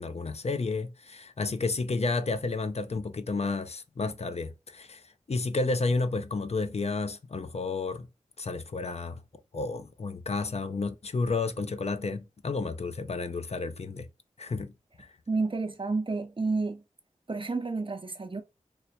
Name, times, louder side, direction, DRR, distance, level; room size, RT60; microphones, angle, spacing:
voice 1, 0.0-5.0 5.3-8.1 8.4-9.2 9.5-14.1 14.4-14.7 15.0-15.1, left 3 dB, 55° left, 0.5 m, -31 dB
voice 2, 15.3-16.8 17.3-18.4, right 3 dB, 40° right, 0.7 m, -30 dB
3.2 x 2.1 x 4.1 m
wide cardioid pair, 45°, 13 cm